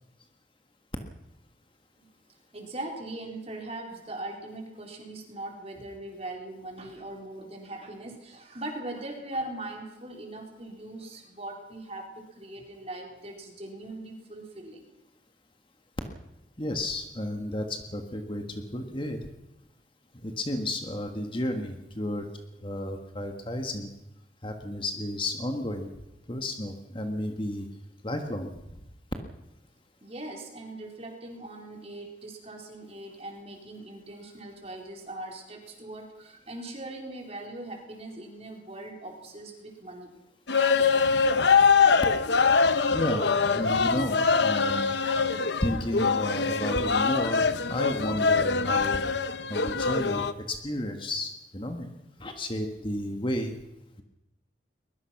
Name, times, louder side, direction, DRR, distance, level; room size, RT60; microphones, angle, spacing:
voice 1, 2.5-14.8 30.0-40.1, right 2 dB, 35° right, 1 dB, 4.3 m, -40 dB
voice 2, 16.6-19.2 20.2-22.3 22.6-23.9 24.4-25.9 26.3-27.7 28.0-28.5 42.9-44.9 45.6-49.0 49.5-51.9 52.2-53.6, left 1 dB, 25° left, 5 dB, 1.6 m, -32 dB
sound 1, 40.5-50.3, left 5 dB, 65° left, 1.0 m, -23 dB
22.5 x 21.0 x 6.0 m, 0.92 s
head